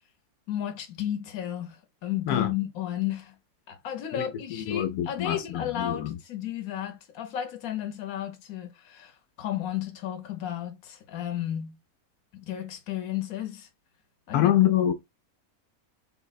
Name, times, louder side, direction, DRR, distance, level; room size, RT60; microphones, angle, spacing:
voice 1, 0.5-3.3 3.7-11.8 12.3-13.7 14.3-14.5, left 11 dB, 70° left, 1.2 m, -33 dB
voice 2, 4.5-6.2 14.3-14.9, left 11 dB, 90° left, 1.2 m, -25 dB
3.9 x 2.2 x 4.0 m
omnidirectional pair, 1.6 m